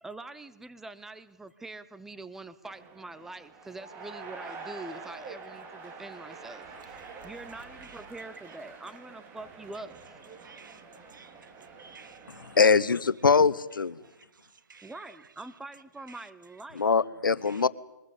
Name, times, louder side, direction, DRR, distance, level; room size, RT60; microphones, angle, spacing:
voice 1, 0.0-10.2 14.8-16.9, right 2 dB, 5° right, 0.8 m, -44 dB
sound 1, 2.6-12.6, right 4 dB, 20° right, 2.7 m, -46 dB
voice 2, 10.4-11.5 11.9-12.1 14.0-14.9 16.1-16.2 17.5-17.6, right 5 dB, 75° right, 2.0 m, -54 dB
voice 3, 12.6-14.0 16.8-17.7, left 5 dB, 90° left, 1.1 m, -22 dB
23.0 x 20.5 x 8.4 m
hypercardioid pair, 155°, 11 cm